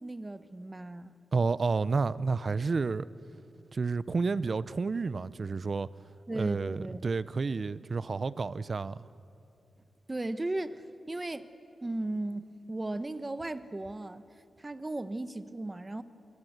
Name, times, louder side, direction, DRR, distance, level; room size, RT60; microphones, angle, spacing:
voice 1, 0.0-1.1 6.3-7.0 10.1-11.5 11.8-14.2 14.6-16.0, right 2 dB, 20° right, 1.0 m, -36 dB
voice 2, 1.3-3.1 3.7-5.9 6.3-9.0, right 4 dB, 45° right, 0.6 m, -30 dB
25.0 x 21.5 x 8.1 m
cardioid pair, 85°, 0 cm